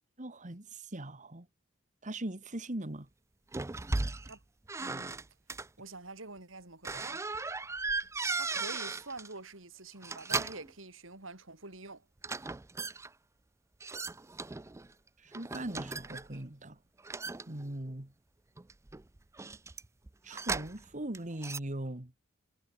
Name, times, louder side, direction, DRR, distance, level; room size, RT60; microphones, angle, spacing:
voice 1, 0.2-1.5 2.0-3.1 15.2-16.8 17.5-18.1 20.2-22.1, right 1 dB, 40° right, 2.0 m, -40 dB
sound 1, 3.5-4.4 4.7-5.7 6.8-9.3 9.9-10.7 12.2-13.1 13.8-14.9 15.3-16.4 17.0-18.0 18.6-20.9 21.1-21.6, right 3 dB, 15° right, 0.4 m, -37 dB
voice 2, 4.8-5.1 5.8-7.2 8.3-12.1, right 3 dB, 80° right, 5.0 m, -46 dB
head